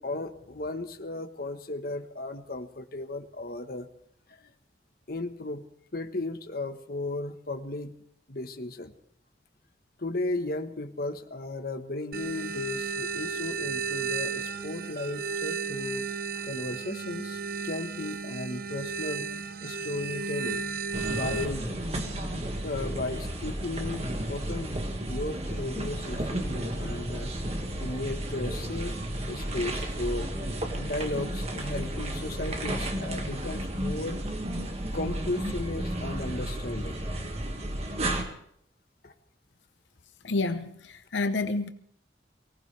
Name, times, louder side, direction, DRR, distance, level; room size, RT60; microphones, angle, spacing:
voice 1, 0.0-3.9 5.1-5.7 5.9-7.9 8.3-8.9 10.0-16.1 16.3-19.3 19.6-20.6 21.1-21.7 22.6-27.3 27.8-29.0 29.2-30.3 30.8-34.2 34.9-37.0 39.0-39.1, left 2 dB, 55° left, 1.2 m, -35 dB
sound 1, 12.1-21.5, right 5 dB, 55° right, 1.0 m, -34 dB
sound 2, 20.9-38.2, right 1 dB, 35° right, 1.9 m, -33 dB
voice 2, 40.2-41.7, left 3 dB, 90° left, 0.9 m, -29 dB
24.0 x 18.0 x 3.4 m
head